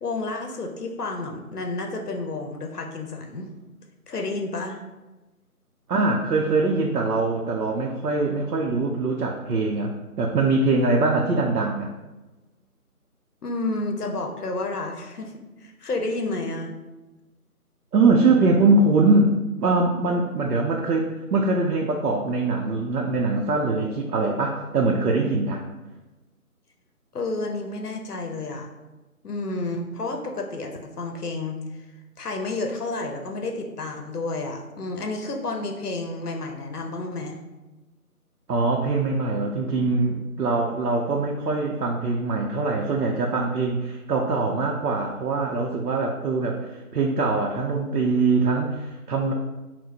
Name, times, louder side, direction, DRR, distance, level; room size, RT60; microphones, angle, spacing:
voice 1, 0.0-3.5 4.1-4.8 13.4-15.3 15.6-16.7 27.1-28.7 29.2-30.7 31.0-31.6 32.2-37.4, left 2 dB, 80° left, 2 dB, 0.8 m, -30 dB
voice 2, 5.9-11.9 17.9-25.6 38.5-49.3, right 3 dB, 90° right, 0 dB, 0.6 m, -23 dB
4.2 x 2.0 x 2.7 m, 1.1 s
figure-of-eight pair, 180°, 45 cm